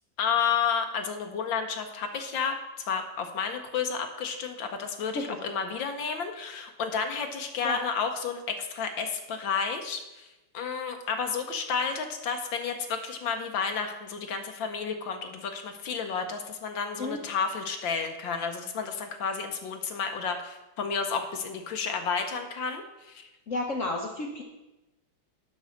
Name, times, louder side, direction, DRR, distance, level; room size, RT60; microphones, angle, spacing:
voice 1, 0.2-2.6 2.9-10.3 10.5-23.2, left 6 dB, 75° left, 6 dB, 1.5 m, -31 dB
voice 2, 23.5-24.4, left 2 dB, 55° left, 1 dB, 1.0 m, -31 dB
8.2 x 6.2 x 6.2 m, 1.0 s
omnidirectional pair, 2.1 m